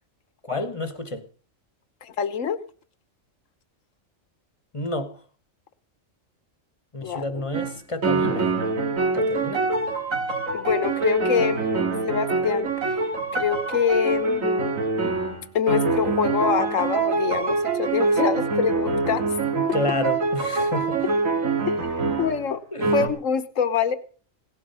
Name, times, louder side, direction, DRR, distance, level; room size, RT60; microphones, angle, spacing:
voice 1, 0.4-1.2 4.7-5.1 6.9-8.6 9.1-9.6 19.5-21.0 22.7-23.0, left 1 dB, 25° left, 1.3 m, -29 dB
voice 2, 2.0-2.6 7.0-7.4 10.5-13.1 13.3-14.7 15.5-19.2 21.6-22.6 22.9-24.0, left 7 dB, 70° left, 1.5 m, -25 dB
sound 1, 7.5-7.7 8.0-22.4 22.8-23.1, right 3 dB, 80° right, 2.4 m, -25 dB
17.5 x 11.5 x 5.6 m
omnidirectional pair, 1.4 m